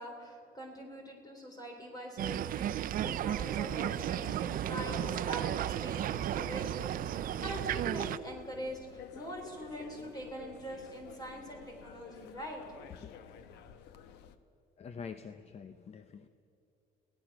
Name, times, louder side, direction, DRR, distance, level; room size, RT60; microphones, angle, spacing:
voice 1, 0.0-12.6, equal, 25° left, 1 dB, 3.6 m, -43 dB
sound 1, 2.2-8.2, right 11 dB, 55° right, 0.6 m, -34 dB
sound 2, 4.7-14.4, left 7 dB, 85° left, 1.1 m, -51 dB
voice 2, 14.8-16.3, left 6 dB, 40° left, 11 dB, 0.8 m, -46 dB
25.5 x 18.0 x 6.1 m, 2.6 s
cardioid pair, 110°, 17 cm